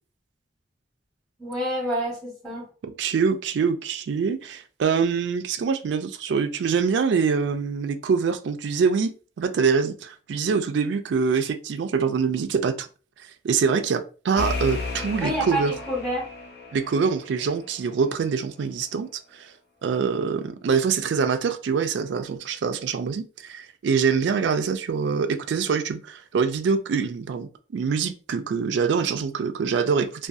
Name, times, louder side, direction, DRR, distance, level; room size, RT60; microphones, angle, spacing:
voice 1, 1.4-2.7 15.2-16.3, equal, 5° left, 0.8 m, -28 dB
voice 2, 2.8-9.1 9.4-12.9 13.4-15.7 16.7-19.5 19.8-30.3, right 5 dB, 70° right, 0.3 m, -24 dB
sound 1, 14.4-17.8, left 3 dB, 55° left, 0.5 m, -34 dB
2.6 x 2.3 x 2.3 m
head